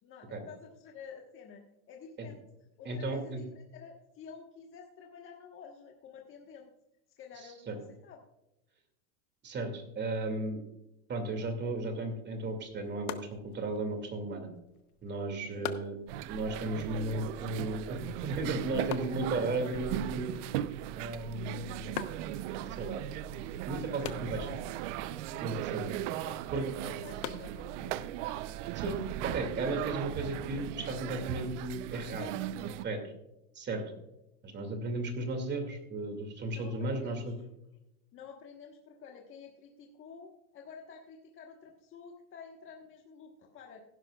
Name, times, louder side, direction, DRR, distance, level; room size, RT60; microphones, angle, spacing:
voice 1, 0.0-2.4 2.8-6.7 7.2-8.2 15.5-15.7 16.6-16.8 25.5-28.1 36.5-37.3 38.1-43.8, left 6 dB, 30° left, 1 dB, 1.3 m, -51 dB
voice 2, 2.8-3.4 7.7-7.8 9.4-10.6 11.1-14.5 15.0-16.0 16.3-20.3 21.0-21.9 22.8-23.0 23.7-24.6 25.4-26.0 26.5-26.6 28.7-29.0 29.2-32.3 32.6-33.1 33.5-33.8 34.4-37.3, right 2 dB, 25° right, 5 dB, 2.4 m, -35 dB
sound 1, 12.4-28.2, left 10 dB, 85° left, 1.1 m, -47 dB
sound 2, 16.1-32.8, right 12 dB, 55° right, 0.6 m, -38 dB
16.5 x 11.0 x 2.4 m, 0.89 s
supercardioid pair, 140°, 43 cm